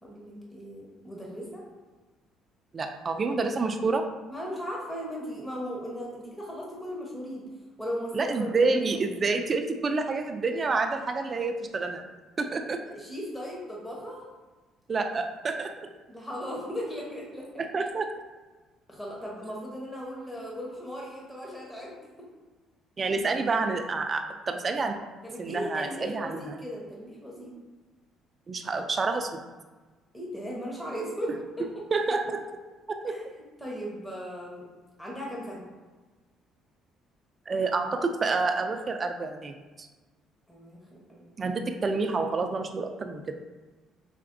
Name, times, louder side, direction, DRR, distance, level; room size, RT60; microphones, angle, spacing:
voice 1, 0.0-1.6 4.3-7.5 7.8-8.8 12.8-14.2 16.1-17.6 18.9-21.9 25.2-27.5 30.1-31.6 33.1-33.2 33.6-34.6 35.0-35.6 40.5-41.5, equal, 10° left, -3 dB, 0.9 m, -37 dB
voice 2, 2.7-4.0 8.1-12.0 12.4-12.8 14.9-15.7 17.6-18.1 23.0-25.0 25.4-26.6 28.5-29.3 31.9-32.4 33.0-33.1 37.5-39.9 41.4-43.2, right 3 dB, 30° right, 5 dB, 0.3 m, -28 dB
5.7 x 3.3 x 2.5 m, 1.3 s
cardioid pair, 125°, 0 cm